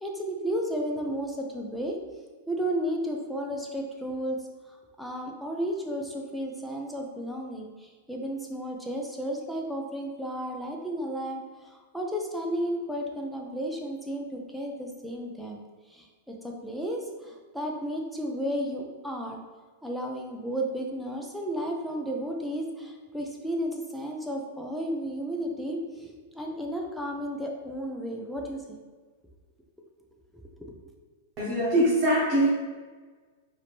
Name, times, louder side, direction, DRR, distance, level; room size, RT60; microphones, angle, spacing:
voice 1, 0.0-2.0 2.5-4.4 4.7-15.6 15.9-19.4 19.8-28.8 30.3-30.8, equal, ahead, -1 dB, 0.7 m, -33 dB
voice 2, 31.4-32.5, right 1 dB, 35° right, -7 dB, 1.3 m, -22 dB
4.8 x 2.8 x 3.6 m, 1.4 s
hypercardioid pair, 120°, 0 cm